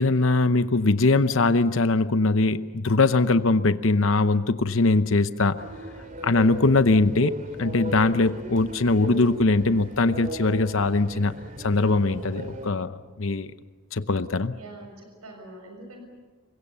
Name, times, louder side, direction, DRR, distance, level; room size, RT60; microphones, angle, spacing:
voice 1, 0.0-5.6 6.2-7.3 7.6-11.3 11.6-13.5 13.9-14.5, left 3 dB, 60° left, 11 dB, 0.8 m, -21 dB
sound 1, 5.6-12.7, equal, 35° right, 2.8 m, -37 dB
voice 2, 14.5-16.0, right 2 dB, 85° right, 3 dB, 6.4 m, -44 dB
28.5 x 24.0 x 6.9 m, 1.3 s
head